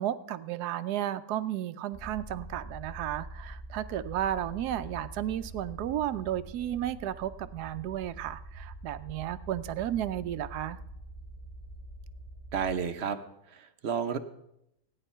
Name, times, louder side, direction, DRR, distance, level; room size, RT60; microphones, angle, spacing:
voice 1, 0.0-10.8, right 11 dB, 70° right, 13 dB, 1.1 m, -33 dB
sound 1, 1.9-12.8, right 1 dB, 40° left, 2.8 m, -45 dB
voice 2, 12.5-13.2 13.5-14.2, right 7 dB, 50° right, 10 dB, 0.8 m, -31 dB
15.5 x 9.8 x 5.6 m, 0.82 s
omnidirectional pair, 1.8 m